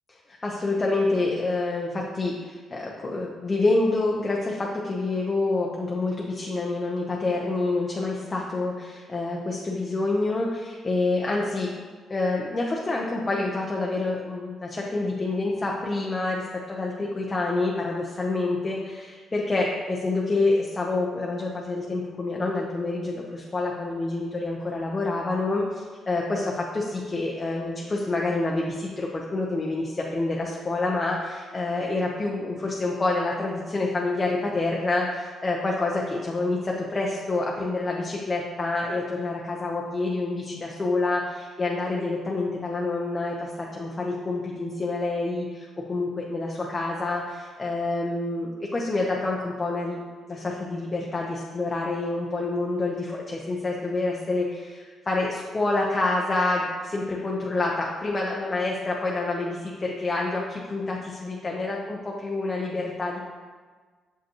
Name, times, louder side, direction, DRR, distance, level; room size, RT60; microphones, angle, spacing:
voice 1, 0.1-11.7 12.1-50.0 50.3-63.2, left 2 dB, 30° left, -2 dB, 0.8 m, -27 dB
6.8 x 5.2 x 3.0 m, 1.5 s
cardioid pair, 75°, 0 cm